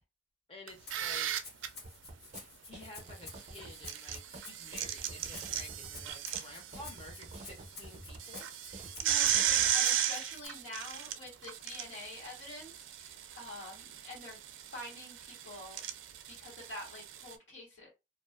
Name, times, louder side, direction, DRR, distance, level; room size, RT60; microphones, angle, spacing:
voice 1, 0.5-1.3 2.6-8.5, left 2 dB, 30° left, 0.6 m, -51 dB
sound 1, 0.7-1.7 3.6-7.2 7.6-7.7 8.1-17.3, right 10 dB, 90° right, 0.4 m, -35 dB
Rattle (instrument), 0.9-10.5, left 3 dB, 55° left, 1.1 m, -51 dB
sound 2, 1.8-9.7, right 2 dB, 35° right, 0.5 m, -49 dB
voice 2, 9.0-14.4 14.7-15.8 16.3-17.9, left 1 dB, 90° left, 1.2 m, -47 dB
2.4 x 2.3 x 2.3 m
head